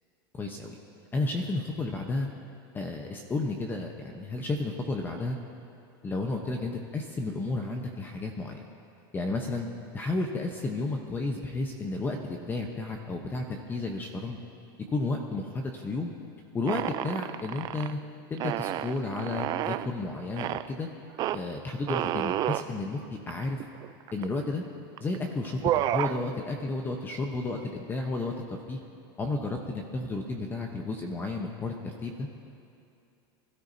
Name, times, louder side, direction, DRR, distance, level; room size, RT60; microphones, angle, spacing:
voice 1, 0.3-0.8 1.1-2.3 2.7-5.4 6.0-8.5 9.1-9.7 9.9-14.4 14.9-16.1 16.5-18.0 18.3-20.9 21.3-23.6 24.1-24.6 25.0-25.6 25.9-28.8 29.2-32.3, left 2 dB, 15° left, 2 dB, 0.9 m, -32 dB
sound 1, 16.7-17.9 18.4-19.9 20.4-20.7 21.2-21.4 21.9-22.7 23.3-23.4 23.6-24.4 25.0-25.2 25.4-26.2, right 13 dB, 30° right, 0.4 m, -30 dB
25.5 x 13.0 x 2.7 m, 2.6 s
supercardioid pair, 145°, 13 cm